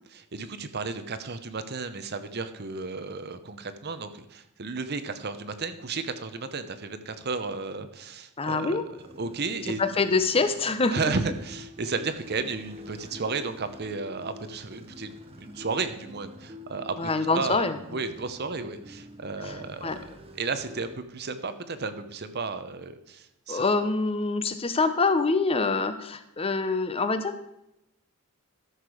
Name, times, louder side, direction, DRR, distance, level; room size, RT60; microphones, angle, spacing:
voice 1, 0.1-8.8 9.2-9.8 10.9-16.9 17.3-19.9 20.4-23.6, right 4 dB, 50° right, 10 dB, 0.8 m, -33 dB
voice 2, 8.4-8.8 9.8-11.0 17.0-17.8 19.4-20.0 23.5-27.4, left 3 dB, 25° left, 10 dB, 0.8 m, -25 dB
sound 1, 9.0-20.9, left 2 dB, 30° right, 1.0 m, -47 dB
13.0 x 6.7 x 4.9 m, 0.85 s
head